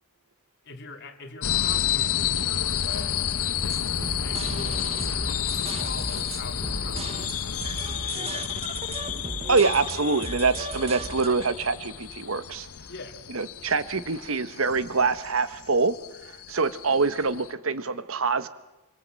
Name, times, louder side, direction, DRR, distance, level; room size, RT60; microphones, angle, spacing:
voice 1, 0.6-3.3 4.0-7.3 8.0-8.9 12.9-13.3, left 2 dB, 50° left, 6 dB, 2.6 m, -42 dB
sound 1, 1.4-17.5, left 9 dB, 85° left, 0.9 m, -31 dB
sound 2, 2.9-7.9, equal, 5° right, 4.4 m, -42 dB
sound 3, 3.7-11.3, right 3 dB, 30° right, 1.0 m, -36 dB
voice 2, 9.5-12.7 13.3-16.0 16.2-18.5, right 4 dB, 65° right, 14 dB, 1.1 m, -25 dB
25.5 x 24.0 x 7.6 m, 1.0 s
head